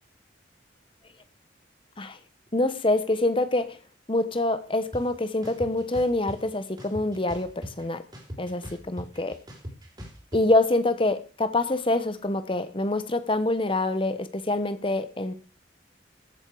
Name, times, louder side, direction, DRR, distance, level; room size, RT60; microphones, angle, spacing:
voice 1, 2.5-3.8 4.1-8.0 8.4-9.4 10.3-15.3, left 2 dB, 30° left, 11 dB, 1.0 m, -25 dB
sound 1, 4.9-5.0 5.4-6.4 6.8-7.8 8.1-10.4, equal, 25° right, 3.5 m, -39 dB
15.0 x 7.3 x 4.8 m, 0.36 s
head